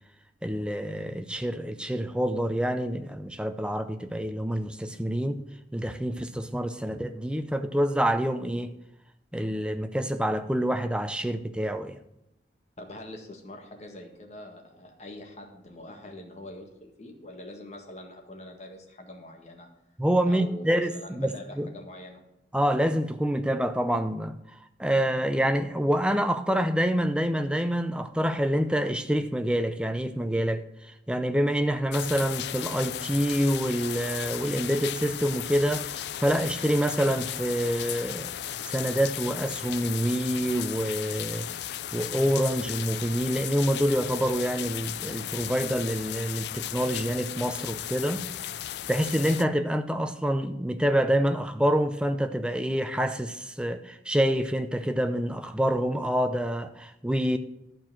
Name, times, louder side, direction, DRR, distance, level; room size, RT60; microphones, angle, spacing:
voice 1, 0.4-5.4 5.7-8.7 9.3-12.0 20.0-21.7 22.5-38.3 38.6-41.5 41.9-48.3 48.9-57.4, equal, 5° right, 0.5 m, -27 dB
voice 2, 12.8-19.7 20.3-22.2, left 1 dB, 35° left, 1.7 m, -44 dB
sound 1, 31.9-49.5, left 11 dB, 65° left, 0.4 m, -35 dB
12.0 x 4.5 x 7.4 m
head